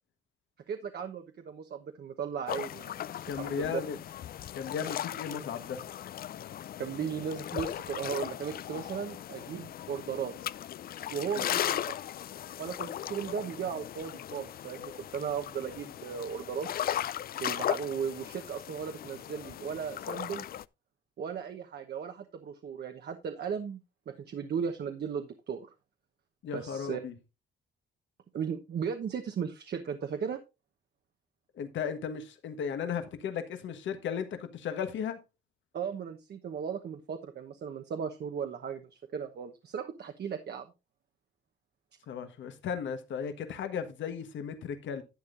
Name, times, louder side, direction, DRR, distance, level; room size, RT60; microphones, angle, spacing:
voice 1, 0.7-3.8 6.8-10.3 11.1-11.8 12.6-16.7 17.1-20.4 21.2-23.8 24.1-25.7 26.5-27.0 28.3-30.4 35.7-40.7, right 7 dB, 55° right, 1.1 m, -36 dB
sound 1, 2.5-20.6, left 11 dB, 50° left, 0.4 m, -37 dB
voice 2, 3.3-4.0 4.5-5.8 11.4-11.5 26.4-27.1 31.5-35.2 42.1-45.0, left 7 dB, 70° left, 1.3 m, -35 dB
11.5 x 8.4 x 2.6 m
cardioid pair, 90°, 20 cm